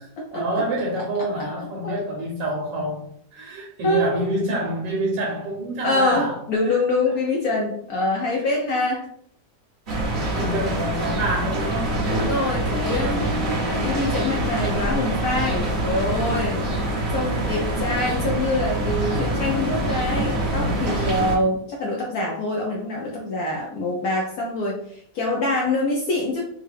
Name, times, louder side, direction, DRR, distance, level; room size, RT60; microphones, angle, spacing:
voice 1, 0.3-6.8 10.4-12.1, right 1 dB, 85° right, -3 dB, 1.5 m, -27 dB
voice 2, 3.8-4.2 5.8-9.1 12.1-16.6 17.1-26.4, left 2 dB, 70° left, -2 dB, 1.0 m, -25 dB
sound 1, 9.9-21.4, right 1 dB, 40° right, 1.2 m, -25 dB
3.5 x 2.3 x 3.3 m, 0.66 s
omnidirectional pair, 1.9 m